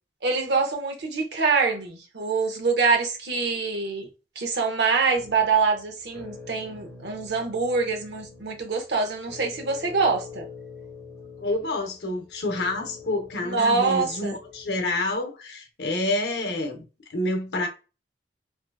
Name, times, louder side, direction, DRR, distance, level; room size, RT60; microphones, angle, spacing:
voice 1, 0.2-4.1 4.4-10.5 13.4-14.3, right 4 dB, 75° right, 0.7 m, -25 dB
sound 1, 5.2-15.1, left 5 dB, 15° left, 0.8 m, -45 dB
voice 2, 11.4-16.8 17.1-17.7, left 2 dB, 70° left, 0.7 m, -28 dB
2.6 x 2.3 x 2.2 m
head